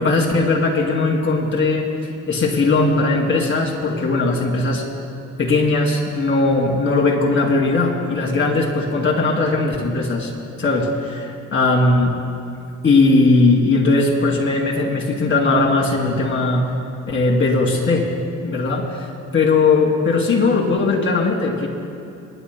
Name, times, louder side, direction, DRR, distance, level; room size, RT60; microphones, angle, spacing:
voice 1, 0.0-1.9 2.3-4.8 5.4-10.3 10.6-12.2 12.8-16.7 17.1-18.1 18.4-19.1 19.3-21.7, left 3 dB, 40° left, -1 dB, 2.7 m, -18 dB
29.0 x 11.0 x 2.2 m, 2.7 s
cardioid pair, 90°, 30 cm